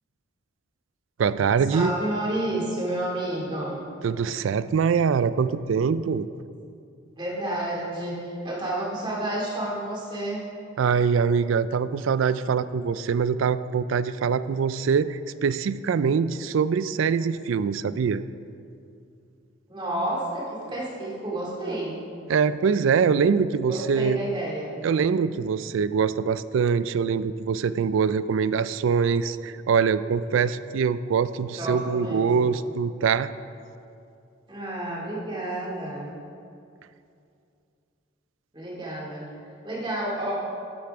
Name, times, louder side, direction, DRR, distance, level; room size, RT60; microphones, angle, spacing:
voice 1, 1.2-1.9 4.0-6.3 10.8-18.2 22.3-24.2 24.8-33.3, right 6 dB, 75° right, 15 dB, 0.3 m, -23 dB
voice 2, 1.7-3.8 7.2-10.4 19.7-22.0 23.7-24.8 31.6-32.5 34.5-36.1 38.5-39.2 39.6-40.4, right 1 dB, 25° right, -5 dB, 2.4 m, -30 dB
12.5 x 9.7 x 3.6 m, 2.5 s
head